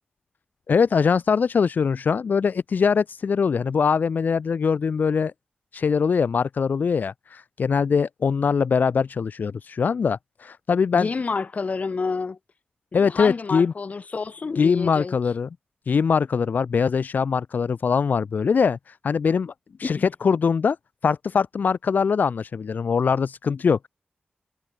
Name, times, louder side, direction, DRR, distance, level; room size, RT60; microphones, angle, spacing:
voice 1, 0.7-5.3 5.7-11.1 12.9-13.7 14.6-15.5 15.9-19.5 19.8-20.8 21.0-23.9, left 6 dB, 65° left, 0.6 m, -22 dB
voice 2, 10.9-12.4 12.9-15.2 19.8-20.1, left 4 dB, 50° left, 2.8 m, -29 dB
wide cardioid pair, 125°, 3 cm